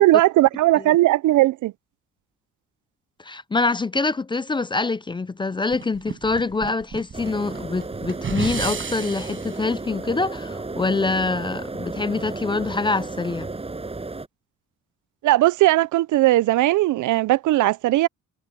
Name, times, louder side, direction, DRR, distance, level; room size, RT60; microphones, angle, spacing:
voice 1, 0.0-1.7 15.2-18.1, right 16 dB, 70° right, 0.5 m, -18 dB
voice 2, 3.2-13.5, left 3 dB, 15° left, 0.4 m, -25 dB
sound 1, 5.7-9.6, right 6 dB, 40° right, 7.7 m, -33 dB
sound 2, 7.1-14.3, right 3 dB, 20° right, 7.9 m, -33 dB
cardioid pair, 140°, 31 cm